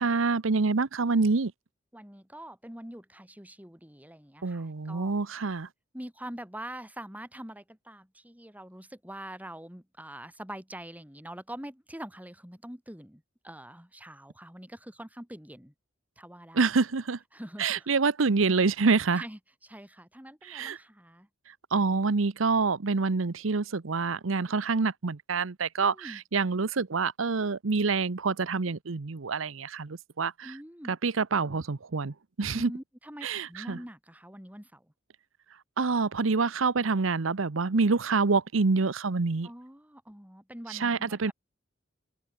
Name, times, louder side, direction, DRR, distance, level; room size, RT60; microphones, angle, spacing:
voice 1, 0.0-1.5 4.4-5.7 16.5-17.2 17.6-19.2 20.5-20.8 21.7-30.5 30.9-32.7 33.2-33.8 35.8-39.5 40.7-41.3, right 4 dB, 85° right, 0.8 m, -27 dB
voice 2, 1.9-5.1 5.9-15.7 16.2-16.7 17.3-17.9 19.2-21.3 25.8-26.2 30.4-30.9 32.5-34.9 39.4-41.3, right 1 dB, 10° right, 7.4 m, -44 dB
head